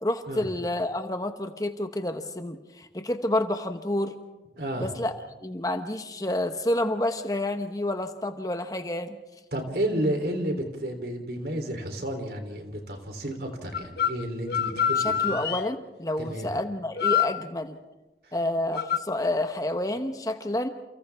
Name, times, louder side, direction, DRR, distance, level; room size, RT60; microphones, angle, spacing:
voice 1, 0.0-4.2 4.8-5.1 5.4-9.2 15.0-17.8 18.3-20.7, left 1 dB, 20° left, 7 dB, 1.0 m, -29 dB
voice 2, 4.6-4.9 9.5-15.4 16.2-16.5, right 1 dB, 60° right, 5 dB, 3.4 m, -31 dB
sound 1, 13.7-14.1 14.5-15.7 17.0-17.3 18.7-19.0, left 8 dB, 60° left, 0.9 m, -25 dB
29.5 x 29.0 x 3.5 m, 1.1 s
head